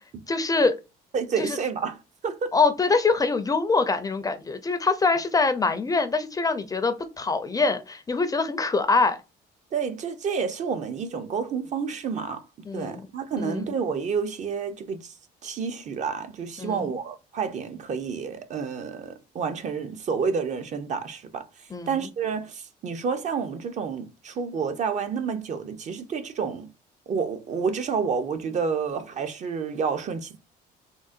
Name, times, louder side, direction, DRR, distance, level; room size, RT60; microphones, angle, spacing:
voice 1, 0.3-0.8 1.4-1.6 2.5-9.2 12.7-13.0 13.4-13.7 16.6-16.9 21.7-22.0, left 4 dB, 20° left, 0.4 m, -24 dB
voice 2, 1.1-2.6 9.7-12.4 12.7-15.1 15.4-26.7 27.1-30.4, right 6 dB, 45° right, 0.6 m, -29 dB
3.8 x 2.1 x 2.4 m
cardioid pair, 110°, 17 cm